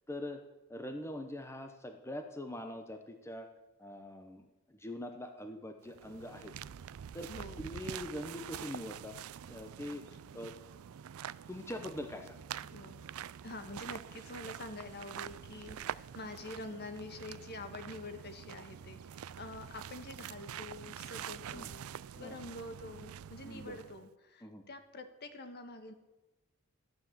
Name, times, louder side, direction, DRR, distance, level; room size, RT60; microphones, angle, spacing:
voice 1, 0.1-0.4 0.7-3.5 3.8-6.5 7.1-7.3 7.6-9.2 9.5-10.0 10.3-10.5 11.5-12.4 21.5-21.7 22.2-22.4 23.4-23.8 24.4-24.6, left 1 dB, 15° left, 6 dB, 0.9 m, -43 dB
sound 1, 5.8-24.1, right 9 dB, 75° right, 0.4 m, -46 dB
voice 2, 7.3-7.7 12.7-13.1 13.4-21.9 22.1-25.9, left 2 dB, 50° left, 8 dB, 1.5 m, -46 dB
14.0 x 9.6 x 7.4 m, 1.1 s
head